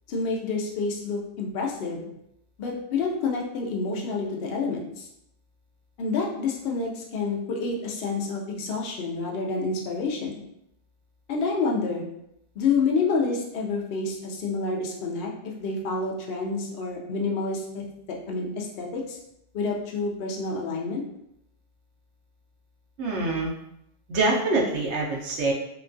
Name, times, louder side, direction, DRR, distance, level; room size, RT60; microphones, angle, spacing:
voice 1, 0.1-2.1 2.6-5.1 6.0-10.4 11.3-12.1 12.6-19.2 19.5-21.0, left 4 dB, 65° left, -1 dB, 0.8 m, -28 dB
voice 2, 23.0-23.5 24.1-25.5, right 2 dB, 75° right, -2 dB, 1.0 m, -25 dB
2.8 x 2.3 x 2.5 m, 0.79 s
omnidirectional pair, 1.2 m